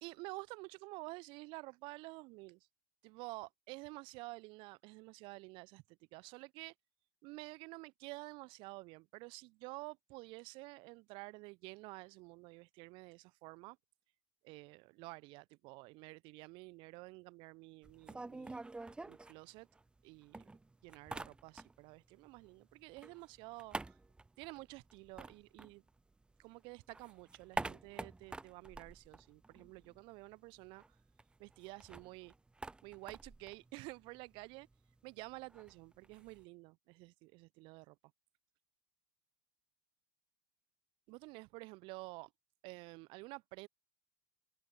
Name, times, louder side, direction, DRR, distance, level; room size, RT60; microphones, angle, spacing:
voice 1, 0.0-2.6 3.0-5.8 6.1-6.7 7.2-13.8 14.4-18.6 19.0-19.7 20.0-20.4 20.8-23.8 24.4-25.8 26.4-30.8 31.4-32.3 32.8-34.7 35.0-37.9 41.1-42.3 42.6-43.7, right 25 dB, 45° right, 0.9 m, -50 dB
sound 1, 17.8-20.0 20.3-22.0 22.2-26.4 26.7-30.0 30.3-30.4 30.6-36.4, right 2 dB, 10° right, 0.7 m, -48 dB
open air
figure-of-eight pair, 80°, 12 cm